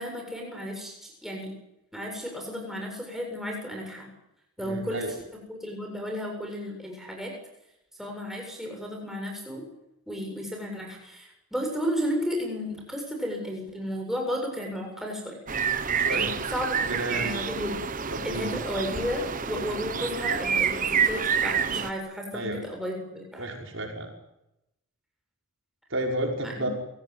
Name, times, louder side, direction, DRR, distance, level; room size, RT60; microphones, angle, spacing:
voice 1, 0.0-1.5 1.9-4.1 4.6-5.1 5.5-7.3 8.0-9.7 10.1-15.4 16.1-17.7 18.2-23.5 26.4-26.7, equal, ahead, 0 dB, 7.4 m, -33 dB
voice 2, 4.6-5.1 16.0-16.4 16.9-17.4 18.1-18.8 22.3-22.6 23.4-24.1 25.9-26.7, right 1 dB, 65° right, 1 dB, 5.6 m, -32 dB
sound 1, 15.5-21.9, right 6 dB, 40° right, 1.1 m, -28 dB
29.5 x 17.5 x 9.6 m, 0.88 s
head